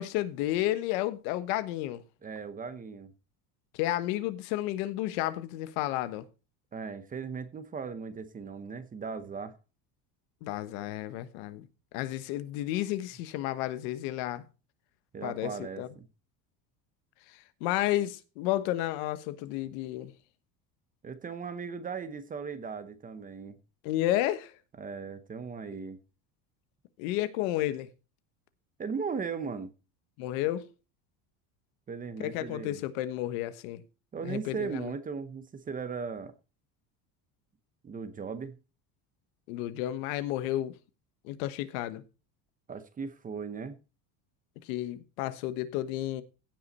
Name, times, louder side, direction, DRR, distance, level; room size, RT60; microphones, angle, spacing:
voice 1, 0.0-2.0 3.7-6.3 10.4-11.7 11.9-14.4 15.2-15.9 17.3-20.1 23.8-24.6 27.0-27.9 30.2-30.7 32.2-33.8 34.2-34.9 39.5-40.7 41.2-42.0 44.6-46.2, left 14 dB, 80° left, 1.3 m, -32 dB
voice 2, 2.2-3.1 6.7-9.5 15.1-16.1 21.0-23.6 24.8-26.0 28.8-29.7 31.9-32.8 34.1-36.3 37.8-38.6 42.7-43.8, right 5 dB, 20° right, 0.8 m, -37 dB
16.0 x 5.5 x 4.2 m
cardioid pair, 145°, 42 cm